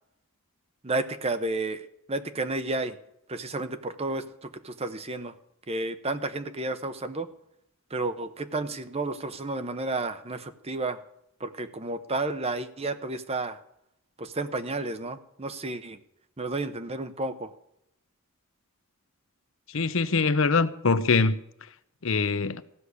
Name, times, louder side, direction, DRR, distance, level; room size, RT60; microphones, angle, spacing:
voice 1, 0.8-3.0 3.3-5.3 5.7-7.3 7.9-11.0 11.4-13.6 14.2-16.0 16.4-17.5, right 2 dB, 30° right, 0.9 m, -31 dB
voice 2, 19.7-21.4 22.0-22.6, left 4 dB, 65° left, 0.8 m, -23 dB
15.5 x 6.6 x 9.6 m
head